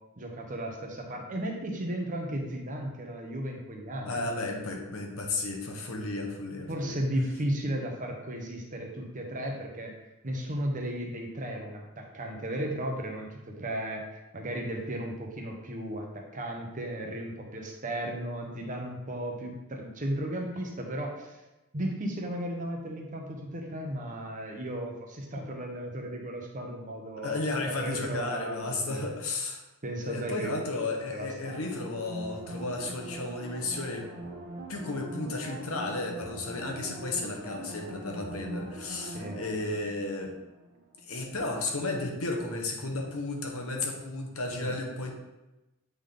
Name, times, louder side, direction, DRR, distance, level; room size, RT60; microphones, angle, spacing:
voice 1, 0.2-4.2 6.7-9.9 10.2-21.4 21.7-27.3 27.7-29.0 29.8-30.5 31.1-31.6 39.1-39.4 44.5-44.7, right 1 dB, 35° right, 1 dB, 1.0 m, -35 dB
voice 2, 4.0-7.0 27.2-29.6 30.0-34.1 34.7-40.3 41.1-45.1, left 2 dB, 75° left, 1 dB, 1.1 m, -33 dB
sound 1, 31.5-40.8 41.2-41.3, right 1 dB, 70° right, 1.3 m, -42 dB
8.1 x 3.9 x 3.5 m, 1.0 s
head